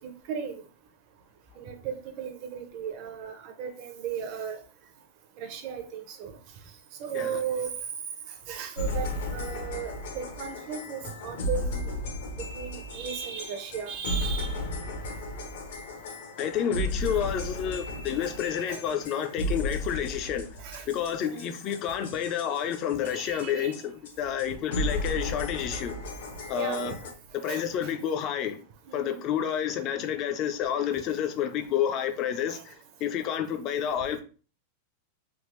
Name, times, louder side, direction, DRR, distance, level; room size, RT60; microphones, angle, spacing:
voice 1, 0.3-0.6 1.6-4.6 5.4-6.4 7.0-7.7 8.5-11.9 12.3-14.6 18.7-18.8 20.6-20.9 21.2-21.5 23.0-23.7 24.7-24.9 26.5-26.9 27.4-27.9 28.9-29.2 32.5-32.6, right 7 dB, 40° right, 0.6 m, -36 dB
sound 1, 8.8-23.5 23.7-23.8 24.0-24.1 24.4-24.5 24.7-27.1, left 1 dB, 75° left, 0.8 m, -34 dB
voice 2, 16.4-20.5 20.9-26.0 26.5-26.9 27.4-28.6 28.9-32.7 33.0-34.2, left 9 dB, 30° left, 0.4 m, -29 dB
3.4 x 2.4 x 3.1 m
supercardioid pair, 165°, 0 cm